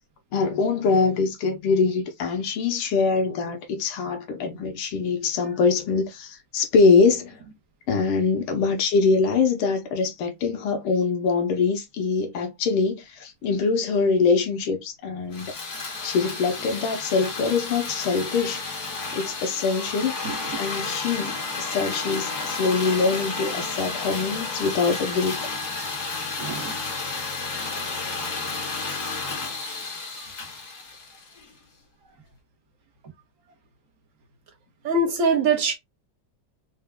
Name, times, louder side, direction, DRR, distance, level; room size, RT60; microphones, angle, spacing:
voice 1, 0.3-7.4 7.9-20.1 20.6-25.5 26.6-26.8, left 4 dB, 85° left, 1.7 m, -24 dB
sound 1, 15.3-31.5, left 3 dB, 50° left, 1.8 m, -32 dB
voice 2, 26.4-26.8 34.8-35.7, right 3 dB, 45° right, 1.2 m, -23 dB
4.6 x 2.2 x 3.4 m
omnidirectional pair, 2.3 m